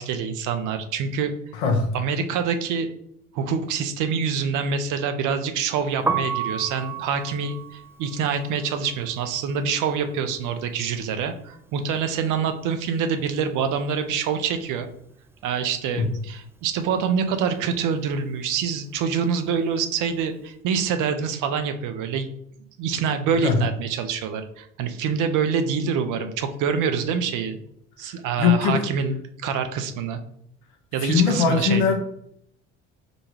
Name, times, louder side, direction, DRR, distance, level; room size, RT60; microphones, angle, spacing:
voice 1, 0.0-1.3 1.9-2.9 3.3-14.9 15.4-22.3 22.8-27.6 28.0-30.2 30.9-31.9, right 6 dB, 60° right, 9 dB, 0.7 m, -26 dB
Piano, 5.9-11.9 12.1-13.7 14.0-20.4, right 5 dB, 5° right, 0.3 m, -34 dB
voice 2, 28.4-28.8 31.0-32.0, left 6 dB, 70° left, 3 dB, 0.9 m, -20 dB
5.0 x 2.3 x 3.2 m, 0.71 s
hypercardioid pair, 55°, 36 cm